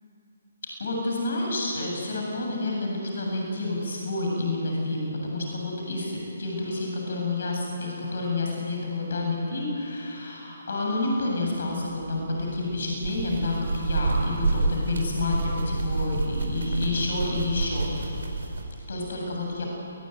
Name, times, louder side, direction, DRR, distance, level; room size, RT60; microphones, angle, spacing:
voice 1, 0.8-17.9 18.9-19.7, left 2 dB, 60° left, -1 dB, 8.0 m, -29 dB
sound 1, 11.4-18.6, right 3 dB, 65° right, 4.9 m, -29 dB
28.5 x 21.0 x 9.5 m, 2.9 s
figure-of-eight pair, 135°, 0 cm